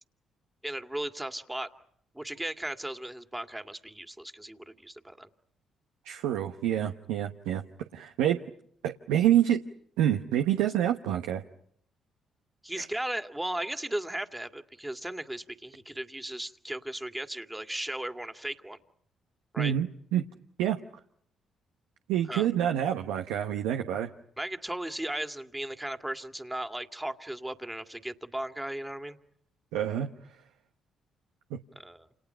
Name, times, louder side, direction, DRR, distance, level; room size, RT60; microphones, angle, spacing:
voice 1, 0.6-1.7 2.1-5.3 12.6-18.8 19.5-19.7 22.3-22.5 24.4-29.2 31.8-32.1, right 1 dB, 10° right, 7 dB, 2.1 m, -36 dB
voice 2, 6.0-7.6 7.9-8.4 8.8-9.6 10.0-11.4 12.8-12.9 19.6-20.2 20.6-20.8 22.1-24.1 29.7-30.1, right 11 dB, 85° right, 5 dB, 1.0 m, -27 dB
29.0 x 28.5 x 5.7 m, 0.68 s
hypercardioid pair, 50°, 0 cm